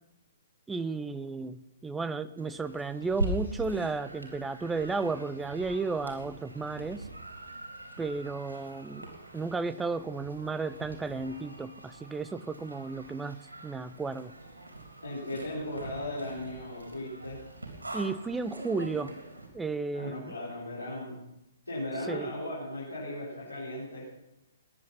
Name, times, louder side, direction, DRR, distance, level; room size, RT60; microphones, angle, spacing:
voice 1, 0.7-7.0 8.0-14.3 17.9-19.1 19.5-20.3 22.1-22.3, right 4 dB, 10° right, 14 dB, 0.6 m, -33 dB
sound 1, 2.4-19.5, right 1 dB, 75° right, 3.7 m, -42 dB
voice 2, 15.0-17.4 19.9-21.2 21.6-24.1, left 1 dB, 80° left, -8 dB, 4.8 m, -37 dB
19.5 x 10.5 x 5.7 m, 0.90 s
figure-of-eight pair, 120°, 0 cm